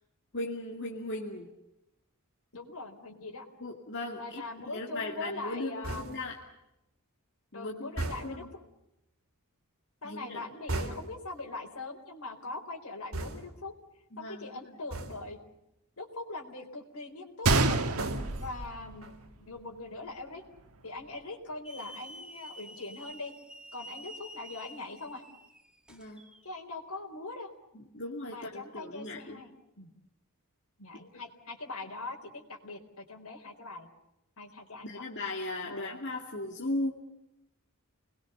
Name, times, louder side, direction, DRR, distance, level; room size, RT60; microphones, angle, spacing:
voice 1, 0.3-1.5 3.6-6.3 7.5-7.9 8.2-8.5 10.0-10.4 14.1-14.6 18.9-19.0 25.9-26.2 27.7-29.4 31.0-31.1 34.8-36.9, left 2 dB, 55° left, 0 dB, 2.5 m, -37 dB
voice 2, 2.5-3.5 4.2-6.1 7.5-8.4 10.0-13.7 14.2-15.4 16.0-17.8 18.4-20.4 20.8-23.3 23.7-25.2 26.4-27.5 28.3-29.9 30.8-33.9 34.4-35.1 35.6-36.0, left 3 dB, 80° left, 1 dB, 4.3 m, -42 dB
sound 1, 5.8-6.4 8.0-8.5 10.7-11.3 13.1-13.7 14.9-15.4 17.5-18.6 19.0-19.4, right 2 dB, 65° right, 3.5 m, -37 dB
Gunshot gunfire, 17.4-19.5 19.8-19.9 20.5-20.7, right 3 dB, 90° right, 1.7 m, -28 dB
Hiss / Alarm, 21.6-26.4, right 1 dB, 5° right, 2.0 m, -49 dB
30.0 x 21.0 x 6.9 m, 0.86 s
head